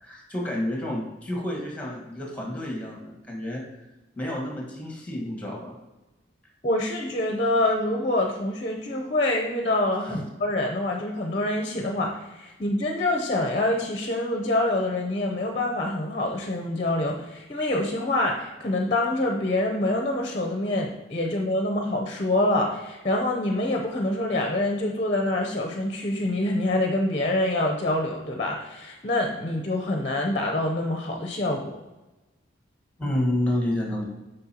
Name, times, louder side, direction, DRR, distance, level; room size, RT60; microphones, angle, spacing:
voice 1, 0.0-3.6 4.2-5.8 33.0-34.0, left 1 dB, 5° left, -1 dB, 1.5 m, -29 dB
voice 2, 6.6-31.8, left 1 dB, 35° left, 2 dB, 0.7 m, -26 dB
7.7 x 5.3 x 2.9 m, 1.1 s
head